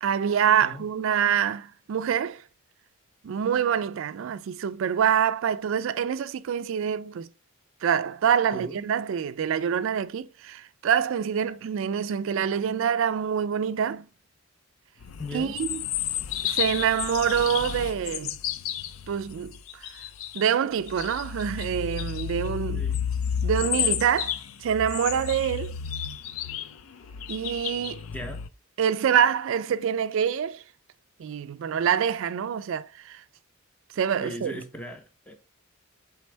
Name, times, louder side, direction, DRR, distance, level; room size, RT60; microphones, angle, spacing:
voice 1, 0.0-2.4 3.2-7.3 7.8-14.1 15.3-15.8 16.4-18.4 19.1-19.9 20.3-22.8 23.4-24.4 24.6-25.8 27.3-28.1 28.8-30.6 31.2-33.2 34.0-34.6, right 8 dB, 65° right, 0.3 m, -26 dB
sound 1, 15.0-20.5 20.8-28.5, left 9 dB, 70° left, 0.4 m, -31 dB
voice 2, 15.2-15.6 22.7-23.1 28.1-28.4 34.2-35.4, left 1 dB, 5° left, 0.6 m, -38 dB
4.4 x 3.4 x 3.2 m
head